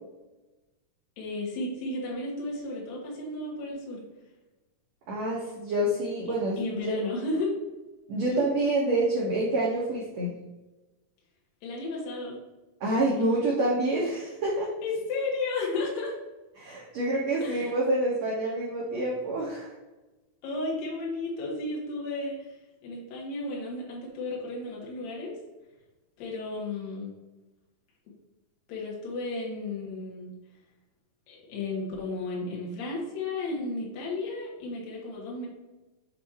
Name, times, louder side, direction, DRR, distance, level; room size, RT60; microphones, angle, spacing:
voice 1, 1.2-4.0 6.3-7.5 8.3-8.4 11.6-12.4 13.2-13.5 14.8-16.1 17.4-17.7 20.4-22.6 22.8-25.3 26.2-27.1 28.7-30.3 31.3-35.5, left 2 dB, 70° left, -3 dB, 3.1 m, -33 dB
voice 2, 5.1-7.0 8.1-10.3 12.8-14.7 16.6-19.7, right 1 dB, 70° right, -4 dB, 1.6 m, -27 dB
7.6 x 3.3 x 4.3 m, 1.1 s
omnidirectional pair, 4.5 m